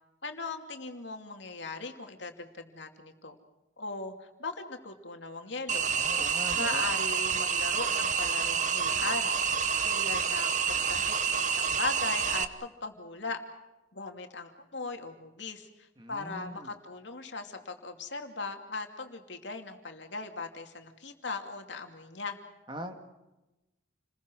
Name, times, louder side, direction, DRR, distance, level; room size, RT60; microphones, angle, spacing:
voice 1, 0.2-3.4 3.8-5.9 6.3-9.4 9.9-10.8 11.1-13.4 13.9-22.4, left 3 dB, 70° left, 4 dB, 2.6 m, -39 dB
sound 1, 5.7-12.4, right 6 dB, 40° right, 1.1 m, -28 dB
voice 2, 5.9-6.8 16.0-16.7 22.7-22.9, equal, 25° right, 5 dB, 1.9 m, -41 dB
29.5 x 21.5 x 6.3 m, 1.0 s
head